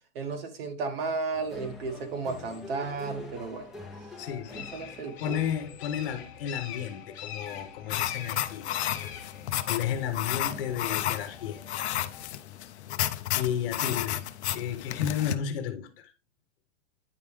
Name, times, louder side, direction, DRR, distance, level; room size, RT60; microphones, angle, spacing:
voice 1, 0.2-3.7 4.5-5.4, right 4 dB, 55° right, 1.7 m, -33 dB
sound 1, 1.3-12.3, left 3 dB, ahead, 1.0 m, -47 dB
sound 2, 1.4-15.2, left 9 dB, 25° left, 1.2 m, -46 dB
voice 2, 4.2-4.7 5.2-8.6 9.6-12.0 12.3-12.4 12.6-12.7 13.3-14.3 14.5-16.1, left 9 dB, 50° left, 1.2 m, -33 dB
sound 3, 7.9-15.4, left 12 dB, 65° left, 0.6 m, -32 dB
9.5 x 3.3 x 3.4 m
hypercardioid pair, 155°, 35 cm